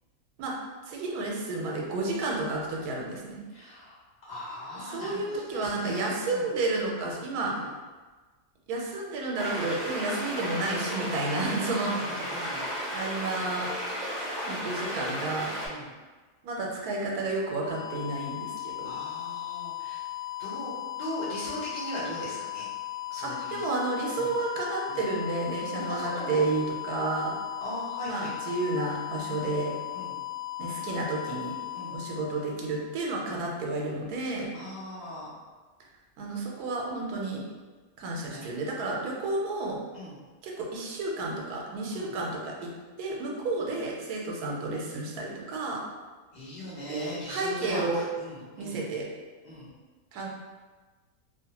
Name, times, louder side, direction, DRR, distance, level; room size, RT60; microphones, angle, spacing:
voice 1, 0.9-3.4 4.9-7.5 8.7-12.2 12.9-13.7 14.5-15.5 16.4-18.9 23.2-27.3 28.1-29.7 30.6-31.6 31.9-34.5 36.2-37.4 38.0-39.8 40.4-42.7 43.0-45.8 46.9-48.0 48.6-49.1 50.1-50.3, right 2 dB, 85° right, -1 dB, 1.1 m, -31 dB
voice 2, 3.5-6.5 7.4-7.7 11.8-12.6 15.6-15.9 18.8-20.0 20.4-22.7 23.1-23.6 24.2-24.3 24.9-25.0 25.7-26.4 27.6-28.3 29.3-29.5 29.9-30.2 31.7-32.0 34.5-35.3 38.3-38.4 39.9-40.2 41.9-42.2 46.3-48.9 49.4-49.7, equal, 35° left, -9 dB, 0.8 m, -39 dB
sound 1, 9.3-15.7, equal, 50° right, 0.5 m, -34 dB
sound 2, 17.3-33.1, left 15 dB, 70° left, 1.1 m, -37 dB
2.8 x 2.1 x 2.8 m, 1.3 s
omnidirectional pair, 1.6 m